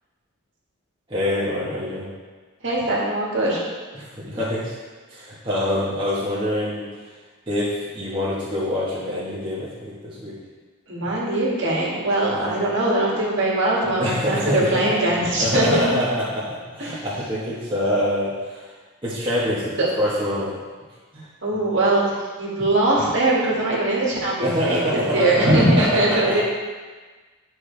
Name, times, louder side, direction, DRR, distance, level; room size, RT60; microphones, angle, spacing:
voice 1, 1.1-2.1 3.9-4.8 5.1-7.1 7.5-10.4 12.3-12.6 14.0-14.8 15.4-18.7 19.0-20.6 21.1-21.3 24.4-26.4, left 1 dB, 20° right, -9 dB, 1.4 m, -25 dB
voice 2, 2.6-3.6 10.9-15.9 16.8-17.0 19.8-19.9 21.4-26.4, right 1 dB, 55° right, -5 dB, 2.2 m, -21 dB
10.5 x 6.2 x 3.4 m, 1.4 s
head